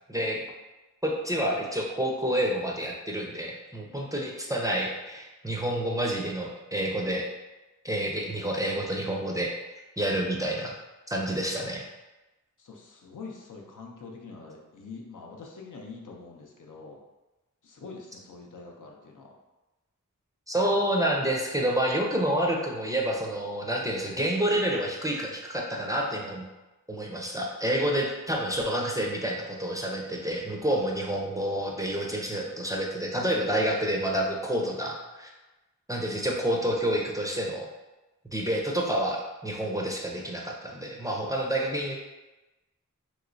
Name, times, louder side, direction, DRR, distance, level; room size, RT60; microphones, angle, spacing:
voice 1, 0.1-0.4 1.0-7.3 7.8-9.5 10.0-10.7 11.1-11.9 20.5-26.5 26.9-35.3 35.9-37.7 38.3-42.0, right 1 dB, 10° right, -1 dB, 0.5 m, -28 dB
voice 2, 12.6-17.0 17.6-19.3 31.9-32.6, left 4 dB, 70° left, 0 dB, 0.6 m, -45 dB
3.0 x 2.9 x 2.6 m, 1.1 s
wide cardioid pair, 65°, 33 cm